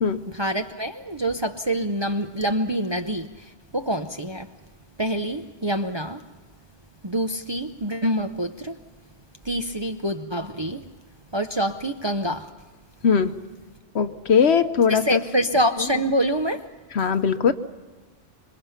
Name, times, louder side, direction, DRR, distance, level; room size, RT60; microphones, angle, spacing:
voice 1, 0.3-3.3 3.7-4.5 5.0-6.2 7.0-8.8 9.5-10.8 11.3-12.5 14.9-16.7, equal, 25° right, 0.7 m, -26 dB
voice 2, 13.0-13.4 13.9-15.2 15.8-15.9 16.9-17.5, left 6 dB, 60° left, 1.1 m, -20 dB
27.0 x 23.5 x 5.8 m
omnidirectional pair, 1.3 m